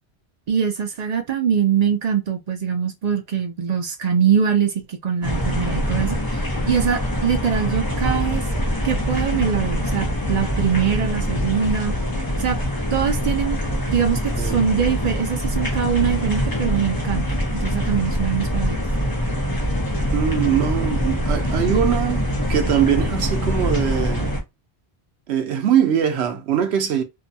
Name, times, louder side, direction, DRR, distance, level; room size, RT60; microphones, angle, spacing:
voice 1, 0.5-8.4 8.8-11.9 12.4-12.6 12.9-13.6 13.9-18.8, right 7 dB, 55° right, 0.4 m, -23 dB
sound 1, 5.2-24.4, equal, 25° left, 0.7 m, -24 dB
voice 2, 20.1-24.4 25.3-27.0, right 9 dB, 75° right, 0.9 m, -22 dB
2.6 x 2.2 x 2.6 m
omnidirectional pair, 1.1 m